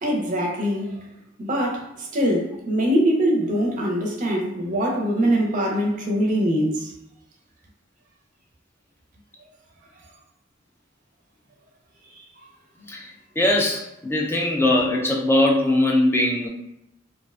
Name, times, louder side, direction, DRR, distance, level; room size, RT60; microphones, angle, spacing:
voice 1, 0.0-1.0 1.4-6.9, equal, 40° right, 0.5 m, -23 dB
voice 2, 13.4-16.5, left 1 dB, 10° left, 0.3 m, -20 dB
2.4 x 2.1 x 2.4 m
head